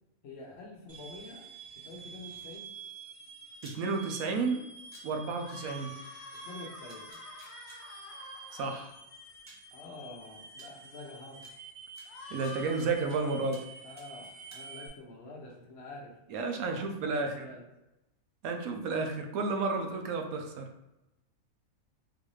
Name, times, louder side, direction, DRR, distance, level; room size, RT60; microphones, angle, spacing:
voice 1, 0.2-1.4 1.8-2.7 6.4-7.2 9.7-11.5 13.8-16.2 16.6-17.6, left 2 dB, 55° left, -2 dB, 0.8 m, -47 dB
sound 1, 0.9-14.9, right 4 dB, 50° right, 0.9 m, -49 dB
sound 2, 3.5-3.8 4.9-5.0 6.3-6.4 6.9-7.8 8.8-8.9 9.5-9.7 10.6-10.7 11.4-11.5 12.0-13.2 13.5-13.7 14.0-14.6, right 1 dB, 20° right, 0.4 m, -53 dB
voice 2, 3.6-4.7 5.0-5.9 8.5-9.0 12.3-13.6 16.3-17.4 18.4-20.7, right 4 dB, 80° right, 4 dB, 1.0 m, -32 dB
sound 3, 5.4-8.8 12.1-12.9, left 2 dB, 80° left, 1.1 m, -47 dB
3.8 x 2.6 x 3.1 m, 0.92 s
omnidirectional pair, 1.5 m